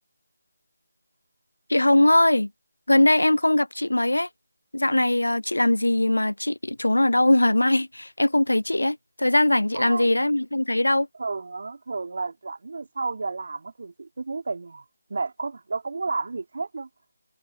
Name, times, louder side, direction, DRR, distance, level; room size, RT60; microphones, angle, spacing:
voice 1, 1.7-2.5 2.9-4.3 4.7-11.1, left 1 dB, 85° left, 0.5 m, -21 dB
voice 2, 9.7-10.2 11.2-14.8 15.1-16.9, right 3 dB, 55° right, 3.5 m, -32 dB
figure-of-eight pair, 160°, 0 cm